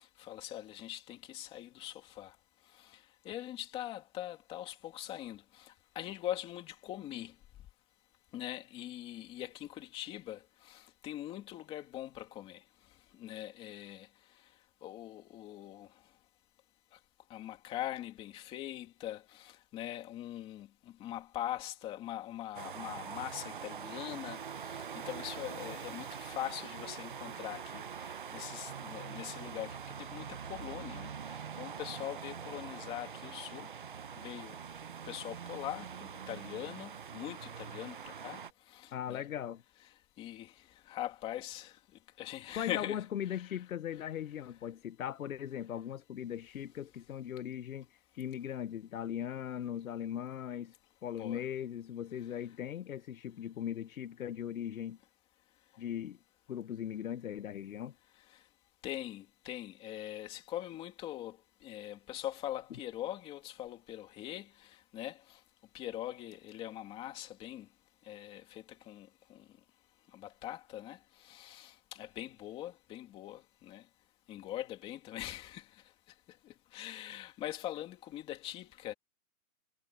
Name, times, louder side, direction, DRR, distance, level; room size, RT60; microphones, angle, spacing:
voice 1, 0.0-2.3 2.8-7.3 8.3-12.6 13.1-14.1 14.8-15.9 17.3-20.7 21.0-33.7 34.2-34.6 35.1-38.4 38.7-39.2 40.2-40.5 40.9-41.8 42.2-43.0 43.3-43.4 51.2-51.4 58.8-65.4 65.7-67.7 68.0-69.5 70.1-73.8 74.3-75.7 76.4-78.9, left 13 dB, 10° left, 2.7 m, -42 dB
sound 1, 22.5-38.5, right 7 dB, 35° right, 0.7 m, -44 dB
voice 2, 38.9-39.6 42.6-50.8 51.0-55.0 55.8-56.2 56.5-57.9, left 10 dB, 60° left, 0.9 m, -39 dB
hypercardioid pair, 175°, 46 cm